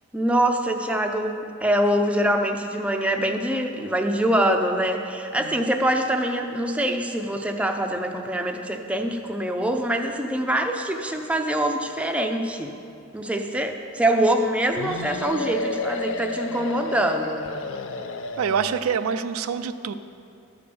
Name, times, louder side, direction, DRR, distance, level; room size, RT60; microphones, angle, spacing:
voice 1, 0.1-12.7 13.1-17.4, right 1 dB, 5° right, 4 dB, 0.5 m, -24 dB
sound 1, 14.8-18.9, left 3 dB, 60° left, 0.5 m, -31 dB
voice 2, 18.4-19.9, right 6 dB, 80° right, 10 dB, 0.4 m, -26 dB
13.0 x 5.1 x 6.9 m, 2.6 s
head